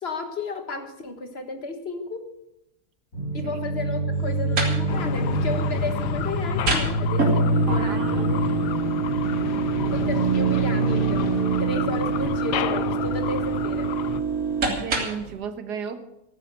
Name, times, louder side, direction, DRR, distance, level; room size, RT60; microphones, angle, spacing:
voice 1, 0.0-2.2 3.3-8.4 9.9-11.3 11.6-13.9, left 3 dB, 40° left, 6 dB, 1.7 m, -33 dB
sound 1, 3.1-12.2, right 2 dB, 55° left, 6.3 m, -26 dB
sound 2, 4.1-15.3, right 5 dB, 60° right, 3.0 m, -28 dB
sound 3, 4.9-14.2, left 11 dB, 90° left, 1.3 m, -31 dB
voice 2, 7.7-8.6 9.5-9.8 14.7-16.0, right 6 dB, 80° right, 9 dB, 1.8 m, -35 dB
14.0 x 11.5 x 6.7 m, 0.87 s
omnidirectional pair, 1.7 m